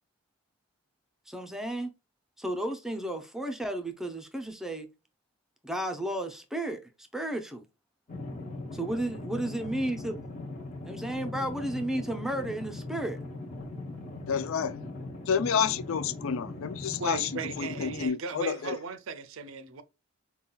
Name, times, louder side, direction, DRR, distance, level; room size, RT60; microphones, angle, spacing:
voice 1, 1.3-1.9 2.4-4.9 5.6-6.8 7.1-7.6 8.7-10.2 10.9-13.2, right 1 dB, ahead, 0.5 m, -33 dB
sound 1, 8.1-18.1, left 2 dB, 35° left, 1.1 m, -40 dB
voice 2, 14.3-14.8 15.3-17.3 17.6-18.8, left 7 dB, 70° left, 0.4 m, -29 dB
voice 3, 17.0-19.8, right 5 dB, 65° right, 0.5 m, -37 dB
5.3 x 2.3 x 2.3 m
head